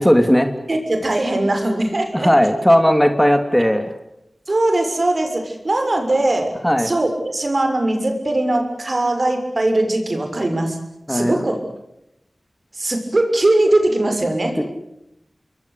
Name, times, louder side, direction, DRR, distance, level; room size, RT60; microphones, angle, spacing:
voice 1, 0.0-0.5 2.1-3.9 6.6-6.9 11.1-11.4 14.6-14.7, equal, 5° left, 7 dB, 2.9 m, -16 dB
voice 2, 0.7-2.3 4.5-6.5 6.8-10.8 11.1-11.6 12.7-14.6, right 1 dB, 55° right, 5 dB, 6.6 m, -20 dB
28.0 x 22.0 x 8.5 m, 0.84 s
cardioid pair, 40°, 0 cm